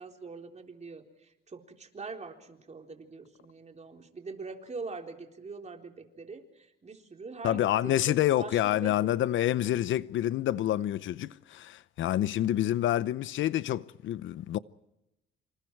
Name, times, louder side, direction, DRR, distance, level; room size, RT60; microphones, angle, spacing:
voice 1, 0.0-9.2 9.6-9.9, right 4 dB, 35° right, 3.9 m, -43 dB
voice 2, 7.4-14.6, left 12 dB, 75° left, 0.8 m, -28 dB
27.5 x 27.0 x 4.7 m
cardioid pair, 90°, 20 cm